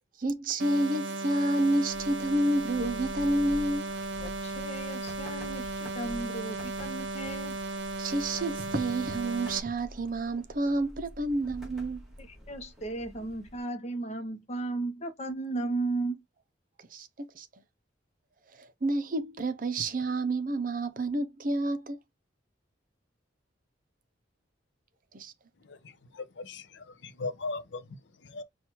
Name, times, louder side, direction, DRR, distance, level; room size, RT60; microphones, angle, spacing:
voice 1, 0.2-3.9 8.0-12.0 16.9-17.5 18.5-22.0 25.1-25.3, right 1 dB, 45° right, 0.5 m, -29 dB
sound 1, 0.6-9.6, right 2 dB, 85° right, 0.7 m, -36 dB
sound 2, 1.9-13.6, equal, 5° right, 1.2 m, -48 dB
voice 2, 4.2-7.5 12.2-16.2, right 2 dB, 35° left, 0.7 m, -35 dB
voice 3, 25.6-28.4, left 3 dB, 70° left, 0.6 m, -39 dB
5.8 x 2.3 x 2.9 m
head